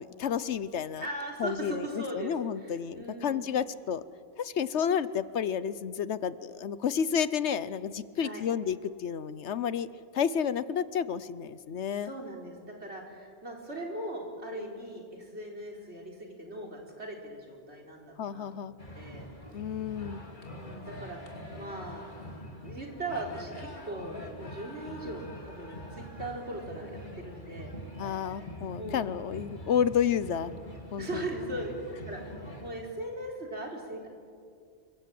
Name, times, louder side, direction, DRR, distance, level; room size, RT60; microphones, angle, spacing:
voice 1, 0.0-1.0 1.4-4.0 4.4-9.9 10.1-12.1 18.2-18.7 19.5-20.2 28.0-30.5 30.9-31.3, left 8 dB, 85° left, 15 dB, 1.2 m, -31 dB
voice 2, 1.0-3.4 8.2-8.4 12.0-19.3 20.5-22.1 22.6-27.7 28.7-29.1 31.0-31.7 32.1-32.2 32.6-34.1, right 1 dB, 75° right, 0 dB, 4.4 m, -39 dB
sound 1, 18.8-32.7, left 1 dB, 45° left, 2.9 m, -44 dB
27.5 x 24.5 x 7.8 m, 2.3 s
omnidirectional pair, 1.1 m